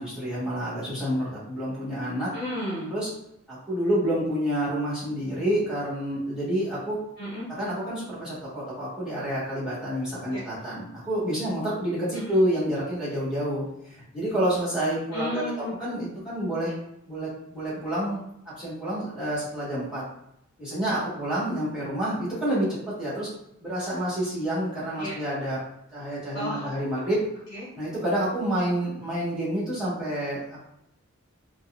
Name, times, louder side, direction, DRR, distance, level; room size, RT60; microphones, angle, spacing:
voice 1, 0.0-2.3 2.9-3.1 3.5-7.0 7.6-15.4 15.8-16.7 17.0-18.2 18.6-20.0 20.6-23.3 23.6-25.6 25.9-27.2 27.8-30.6, right 1 dB, 5° right, -9 dB, 1.3 m, -28 dB
voice 2, 2.3-2.9 7.2-7.5 10.3-10.4 12.1-12.4 15.1-15.8 25.0-25.2 26.3-26.7 27.5-27.7, left 1 dB, 50° left, -10 dB, 1.1 m, -33 dB
3.9 x 2.1 x 2.4 m, 0.78 s
head